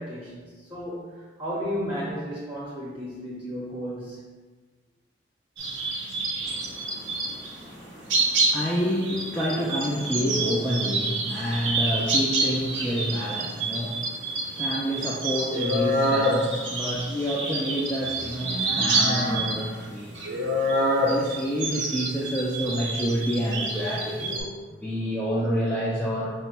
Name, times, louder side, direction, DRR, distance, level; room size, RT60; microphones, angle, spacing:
voice 1, 0.0-4.2, equal, 10° right, -7 dB, 0.7 m, -33 dB
sound 1, 5.6-7.7 8.1-24.4, right 2 dB, 75° right, 0.6 m, -27 dB
voice 2, 6.4-20.2 21.0-24.5 24.8-26.3, equal, 10° left, -8 dB, 0.3 m, -29 dB
3.9 x 2.1 x 4.4 m, 1.4 s
head